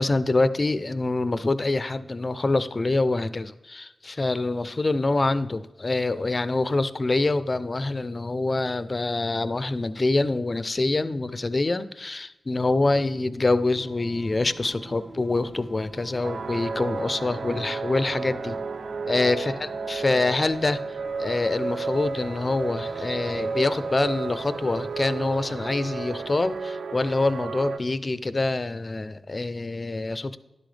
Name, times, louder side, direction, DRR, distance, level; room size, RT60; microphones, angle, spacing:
voice 1, 0.0-18.6 19.1-30.4, left 2 dB, 35° left, 13 dB, 0.6 m, -25 dB
Singing, 13.5-26.7, right 1 dB, 30° right, 1.2 m, -44 dB
sound 1, 16.2-27.8, right 4 dB, 85° right, 0.5 m, -33 dB
11.5 x 11.0 x 3.4 m, 0.98 s
wide cardioid pair, 100°, 0 cm